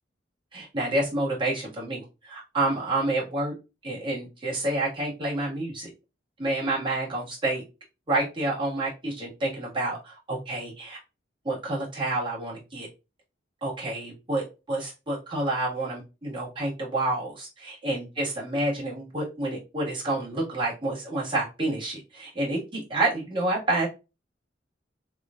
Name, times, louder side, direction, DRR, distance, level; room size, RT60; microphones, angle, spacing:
voice 1, 0.5-3.5 3.8-5.9 6.4-7.6 8.1-11.0 11.4-12.9 13.6-23.9, right 2 dB, 25° right, -5 dB, 1.9 m, -29 dB
3.7 x 3.5 x 2.5 m, 0.27 s
head